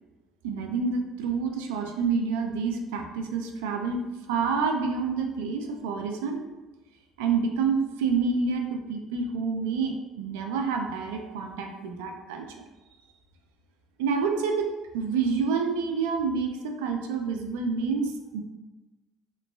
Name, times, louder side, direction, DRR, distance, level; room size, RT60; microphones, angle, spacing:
voice 1, 0.4-4.0 4.3-6.4 7.2-12.4 14.0-18.4, right 5 dB, 85° right, 3 dB, 0.3 m, -28 dB
2.9 x 2.2 x 2.3 m, 1.1 s
supercardioid pair, 75°, 0 cm